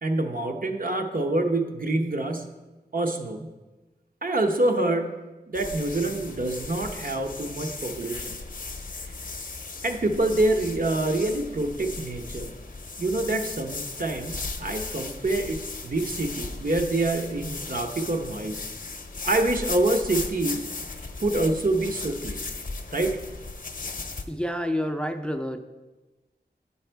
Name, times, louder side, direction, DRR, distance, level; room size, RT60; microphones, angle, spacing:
voice 1, 0.0-2.5 2.9-3.5 4.2-8.3 9.8-12.5 13.0-18.6 19.2-20.6 21.2-22.4 22.9-23.2, right 2 dB, 55° right, 4 dB, 0.8 m, -26 dB
sound 1, 5.5-24.2, left 3 dB, 50° left, 0.7 m, -36 dB
voice 2, 24.3-25.6, equal, 5° left, 7 dB, 0.4 m, -28 dB
8.6 x 5.6 x 4.5 m, 1.2 s
wide cardioid pair, 75°, 17 cm